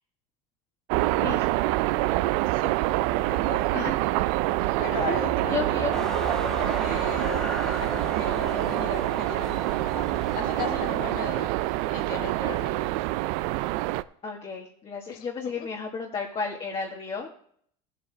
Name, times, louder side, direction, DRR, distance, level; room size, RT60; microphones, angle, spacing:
sound 1, 0.9-14.0, right 18 dB, 70° right, 0.5 m, -26 dB
voice 1, 3.3-3.8 4.8-6.0 6.5-9.7 10.3-11.5 11.8-13.0 15.1-15.7, left 9 dB, 60° left, 6 dB, 1.8 m, -38 dB
sound 2, 3.8-10.7, right 5 dB, 25° right, 1.7 m, -42 dB
voice 2, 5.5-5.9 14.2-17.3, left 4 dB, 30° left, 0 dB, 1.6 m, -32 dB
sound 3, 5.9-11.5, equal, 5° left, 1.7 m, -36 dB
15.0 x 8.0 x 3.4 m, 0.62 s
supercardioid pair, 115°, 17 cm